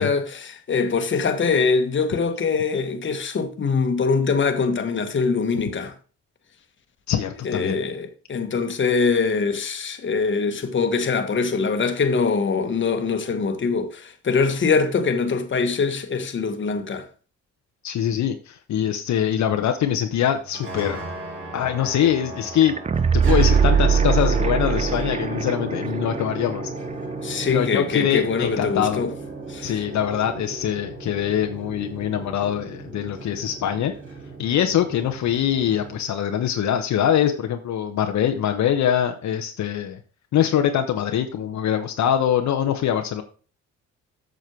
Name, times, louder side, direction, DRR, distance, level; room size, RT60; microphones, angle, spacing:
voice 1, 0.0-5.9 7.4-17.0 27.2-29.1 29.5-29.8, left 4 dB, 40° left, 1.4 m, -23 dB
voice 2, 7.1-7.8 17.8-21.0 21.5-22.7 23.3-26.7 27.5-29.0 29.6-33.9 34.4-40.0 40.3-43.2, left 10 dB, 70° left, 1.0 m, -23 dB
sound 1, 20.4-36.0, right 2 dB, 45° right, 4.0 m, -33 dB
sound 2, 22.6-25.5 25.8-25.9, right 7 dB, 20° right, 0.5 m, -20 dB
7.6 x 6.4 x 4.6 m
cardioid pair, 90°, 30 cm